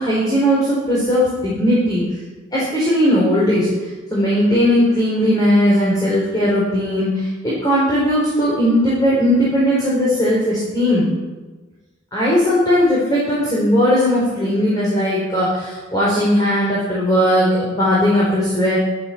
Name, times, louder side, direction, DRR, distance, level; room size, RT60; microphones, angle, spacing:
voice 1, 0.0-2.0 2.5-3.7 4.1-11.0 12.1-18.8, equal, 20° left, -6 dB, 4.1 m, -17 dB
11.5 x 11.0 x 7.2 m, 1.3 s
head